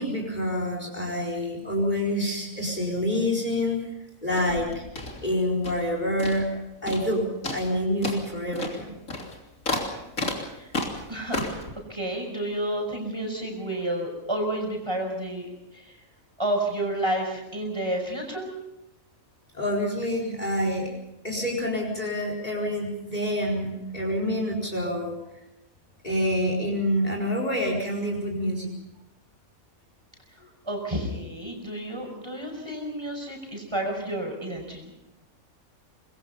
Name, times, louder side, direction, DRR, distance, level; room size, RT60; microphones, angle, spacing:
voice 1, 0.0-3.8 4.2-4.8 5.2-6.5 6.8-8.9 19.5-20.9 21.2-25.2 26.0-28.7, left 1 dB, 30° left, 0 dB, 4.7 m, -27 dB
sound 1, 4.3-5.9 6.2-6.6 6.9-7.1 7.4-11.7, left 2 dB, 70° left, 3.6 m, -32 dB
voice 2, 11.1-16.0 16.4-18.5 30.6-34.9, right 1 dB, 20° right, 1 dB, 5.7 m, -30 dB
24.5 x 21.5 x 5.5 m, 0.89 s
omnidirectional pair, 1.5 m